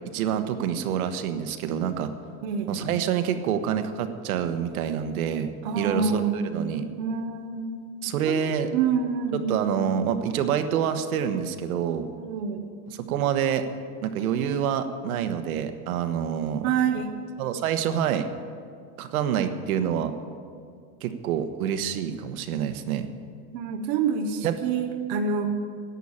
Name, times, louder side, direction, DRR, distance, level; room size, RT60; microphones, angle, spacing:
voice 1, 0.1-2.1 2.7-6.9 8.0-8.7 9.3-12.1 13.1-13.6 14.0-16.7 17.4-18.3 19.0-20.1 21.0-23.1 24.4-24.6, right 8 dB, 70° right, 8 dB, 1.2 m, -27 dB
voice 2, 2.4-2.8 5.6-6.5 7.0-7.7 8.3-8.4 8.7-9.8 12.1-12.6 16.6-17.1 23.5-25.5, right 6 dB, 30° right, 4 dB, 0.6 m, -27 dB
11.0 x 8.7 x 9.8 m, 2.2 s
supercardioid pair, 180°, 44 cm